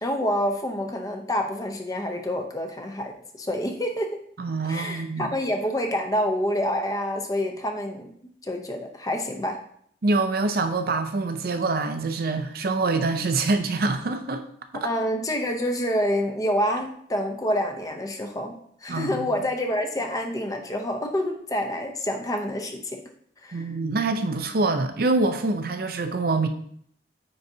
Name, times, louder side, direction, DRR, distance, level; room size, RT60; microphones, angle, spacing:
voice 1, 0.0-3.1 3.4-4.2 4.7-8.1 8.4-9.6 14.8-23.0 23.4-23.6, equal, 20° left, 3 dB, 0.7 m, -27 dB
voice 2, 4.4-5.3 10.0-14.4 14.8-14.9 18.9-19.3 23.5-26.5, right 3 dB, 55° right, 7 dB, 0.5 m, -25 dB
9.3 x 3.9 x 2.7 m, 0.65 s
head